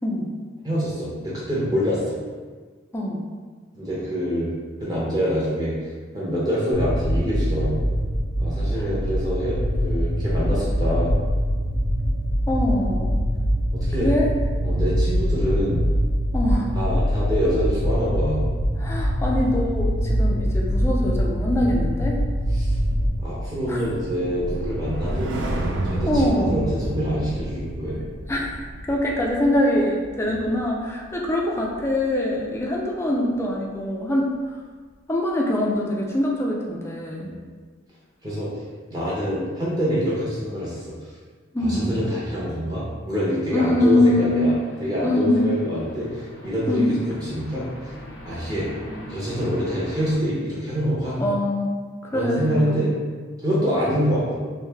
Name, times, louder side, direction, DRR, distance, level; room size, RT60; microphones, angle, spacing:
voice 1, 0.6-2.2 3.7-4.5 4.8-5.8 6.1-7.9 8.4-11.1 13.7-14.1 14.6-15.8 16.7-18.4 22.5-22.7 23.2-25.4 25.8-28.0 37.2-37.3 38.2-38.5 38.9-40.9 41.6-44.5 44.8-47.0 47.3-47.7 48.3-48.7 49.1-51.2 52.1-52.9 53.4-54.3, equal, 20° right, -8 dB, 0.7 m, -25 dB
sound 1, 6.7-23.1, equal, 75° right, 1.1 m, -23 dB
voice 2, 12.5-13.2 14.0-14.3 16.3-16.7 18.8-22.2 23.7-23.8 26.1-26.6 28.3-28.4 28.9-34.3 35.1-37.3 41.5-42.0 43.5-44.4 45.0-45.6 46.7-46.9 51.2-51.7 52.0-52.8, left 1 dB, 15° left, -2 dB, 0.4 m, -23 dB
sound 2, 22.3-32.1 32.4-32.7, right 1 dB, 60° right, 0.4 m, -31 dB
sound 3, 43.7-50.2, equal, 60° left, 0.6 m, -41 dB
3.2 x 2.6 x 3.4 m, 1.5 s
head